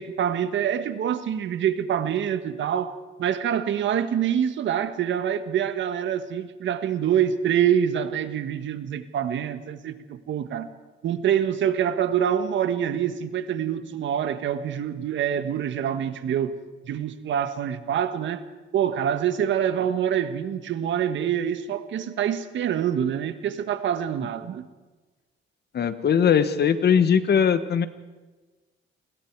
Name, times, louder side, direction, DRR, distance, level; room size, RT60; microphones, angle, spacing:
voice 1, 0.0-10.7 11.0-16.6 16.8-18.4 18.7-24.6, right 9 dB, 70° right, 1.6 m, -26 dB
voice 2, 25.7-27.9, left 7 dB, 55° left, 1.4 m, -20 dB
30.0 x 21.0 x 4.8 m
cardioid pair, 90°, 20 cm